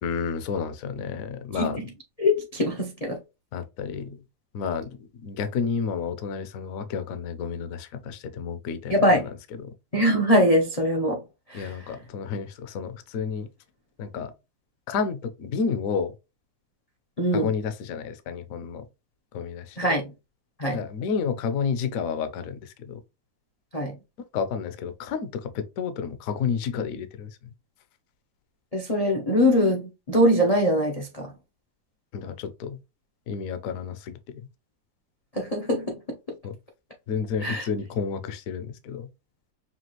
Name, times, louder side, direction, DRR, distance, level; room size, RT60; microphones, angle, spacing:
voice 1, 0.0-1.9 3.5-4.2 4.5-9.7 11.5-13.5 14.0-14.3 14.9-16.1 17.3-18.9 19.3-19.8 20.7-23.0 24.3-27.3 32.1-32.8 33.3-34.5 36.4-36.6 37.1-39.1, left 6 dB, 65° left, 0.9 m, -31 dB
voice 2, 1.5-1.8 2.2-3.2 8.9-9.3 9.9-11.2 11.5-11.8 17.2-17.5 19.8-20.1 20.6-20.8 23.7-23.9 28.7-31.3 35.4-36.0 36.3-36.4 37.4-37.6, equal, 80° left, 0.3 m, -22 dB
6.0 x 2.4 x 2.9 m
omnidirectional pair, 2.1 m